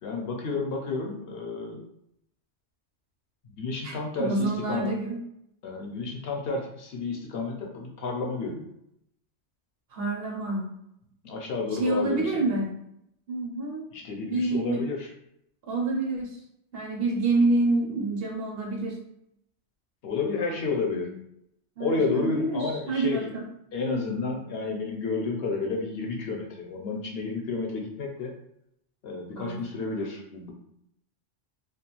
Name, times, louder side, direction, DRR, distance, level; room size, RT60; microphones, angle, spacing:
voice 1, 0.0-1.8 3.4-4.9 5.6-8.7 11.1-12.5 13.9-15.1 20.0-21.1 21.8-23.3 23.7-28.3 29.0-30.5, left 3 dB, 65° left, 0 dB, 0.7 m, -31 dB
voice 2, 3.8-5.2 9.9-10.7 11.7-12.7 13.3-13.8 14.3-14.8 15.7-16.4 16.7-19.0 20.9-21.1 21.8-23.4 29.4-29.5, right 2 dB, 65° right, 0 dB, 0.8 m, -27 dB
2.3 x 2.2 x 2.9 m, 0.76 s
omnidirectional pair, 1.2 m